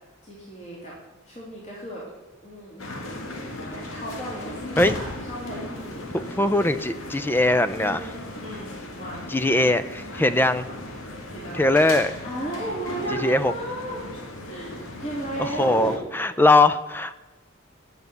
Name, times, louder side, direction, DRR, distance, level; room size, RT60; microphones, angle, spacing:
voice 1, 0.2-0.9 1.2-2.0 2.4-2.8 3.7-6.0 7.8-8.7 8.9-9.2 11.3-11.6 12.2-14.0 14.4-16.0, right 1 dB, 35° left, -5 dB, 2.9 m, -34 dB
sound 1, 2.8-16.0, left 1 dB, 85° left, 1.8 m, -37 dB
voice 2, 6.1-8.1 9.3-10.7 11.5-12.1 13.2-13.5 15.4-17.1, left 2 dB, 10° left, 13 dB, 0.4 m, -21 dB
11.0 x 7.0 x 7.9 m, 1.2 s
head